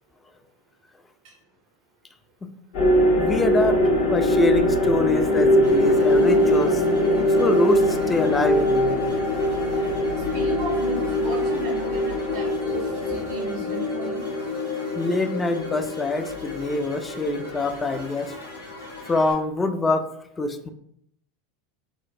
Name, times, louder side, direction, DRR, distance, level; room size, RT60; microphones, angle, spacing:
sound 1, 2.7-19.3, left 1 dB, 60° left, 0.9 m, -22 dB
voice 1, 3.2-3.8 4.1-6.8 7.4-9.0 15.0-18.3 19.1-20.1 20.4-20.7, left 2 dB, 15° left, 8 dB, 0.3 m, -25 dB
sound 2, 5.6-19.3, left 1 dB, 80° left, 1.4 m, -44 dB
voice 2, 10.3-14.3, right 3 dB, 55° right, 2 dB, 0.4 m, -35 dB
3.7 x 2.0 x 2.5 m, 0.71 s
figure-of-eight pair, 80°, 0 cm